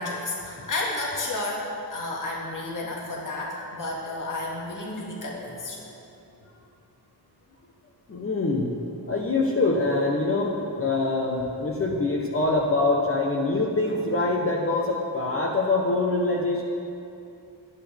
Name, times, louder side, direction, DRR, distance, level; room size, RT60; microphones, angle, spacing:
voice 1, 0.0-5.8, left 2 dB, 50° left, -3 dB, 2.1 m, -31 dB
voice 2, 8.1-8.7 9.1-16.6, left 2 dB, 35° left, -1 dB, 1.1 m, -24 dB
23.0 x 9.4 x 3.5 m, 2.7 s
wide cardioid pair, 115°, 40 cm